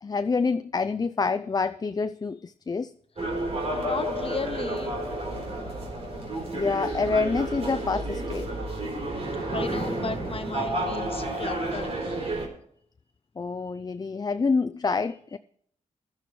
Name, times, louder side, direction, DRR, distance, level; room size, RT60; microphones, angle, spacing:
voice 1, 0.0-2.9 6.5-8.5 13.4-15.4, left 4 dB, 30° left, 0.4 m, -27 dB
sound 1, 3.2-12.5, right 1 dB, 50° right, 3.8 m, -31 dB
voice 2, 3.7-4.9 9.5-12.0, left 4 dB, 45° left, 1.0 m, -35 dB
16.5 x 12.0 x 3.2 m
cardioid pair, 70°, 13 cm